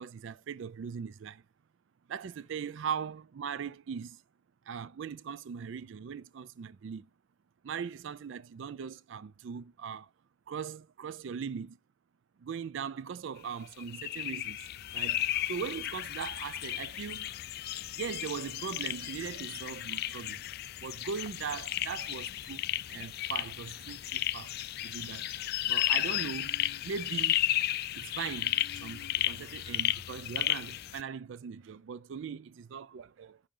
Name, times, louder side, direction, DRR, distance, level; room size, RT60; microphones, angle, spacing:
voice 1, 0.0-1.4 2.1-4.2 4.7-7.1 7.6-10.1 10.5-11.8 12.4-15.2 15.5-17.3 18.0-20.4 20.8-24.6 24.8-25.3 25.7-26.5 26.8-27.4 27.9-33.4, right 6 dB, 65° right, 0.3 m, -40 dB
sound 1, 13.8-31.0, left 13 dB, 50° left, 0.3 m, -34 dB
10.0 x 3.9 x 3.7 m
head